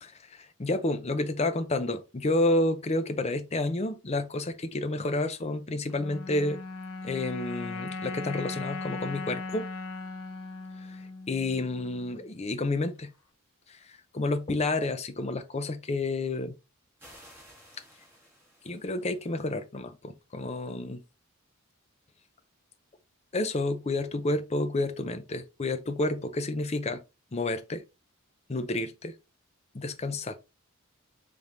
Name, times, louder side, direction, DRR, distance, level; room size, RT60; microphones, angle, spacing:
voice 1, 0.0-6.6 7.0-9.7 10.9-13.1 13.7-13.8 14.1-16.5 18.6-21.0 23.3-27.0 27.3-27.8 28.5-29.1 29.7-30.4, left 2 dB, 30° left, 0.6 m, -30 dB
sound 1, 5.9-12.3, left 3 dB, 75° left, 0.8 m, -38 dB
sound 2, 17.0-19.6, equal, 10° right, 2.0 m, -55 dB
5.0 x 3.5 x 2.7 m
head